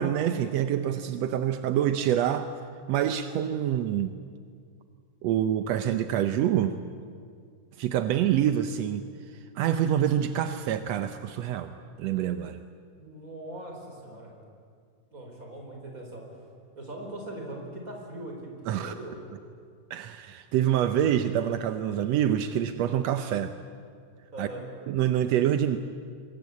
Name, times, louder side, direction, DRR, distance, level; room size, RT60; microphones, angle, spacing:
voice 1, 0.0-2.5 2.9-4.1 5.2-6.8 7.8-11.7 12.0-12.6 18.7-18.9 19.9-23.5 24.4-24.5 24.9-25.8, right 10 dB, 75° right, 9 dB, 1.6 m, -26 dB
voice 2, 13.0-14.3 15.1-16.3 16.7-19.2 24.3-24.6, right 1 dB, 25° right, 1 dB, 4.9 m, -40 dB
25.5 x 22.0 x 8.5 m, 2.2 s
omnidirectional pair, 3.9 m